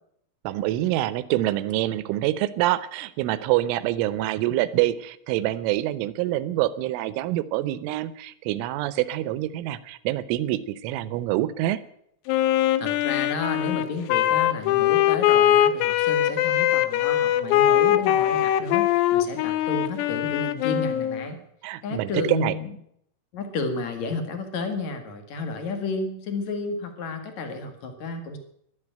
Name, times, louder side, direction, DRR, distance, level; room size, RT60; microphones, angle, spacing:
voice 1, 0.4-11.8 21.6-22.6, right 15 dB, 80° right, 16 dB, 3.2 m, -26 dB
Wind instrument woodwind instrument, 12.3-21.3, left 12 dB, 90° left, 3.7 m, -21 dB
voice 2, 12.8-21.4 21.8-22.8 23.3-28.4, left 3 dB, 55° left, 6 dB, 2.1 m, -32 dB
13.5 x 12.0 x 9.0 m, 0.73 s
omnidirectional pair, 5.9 m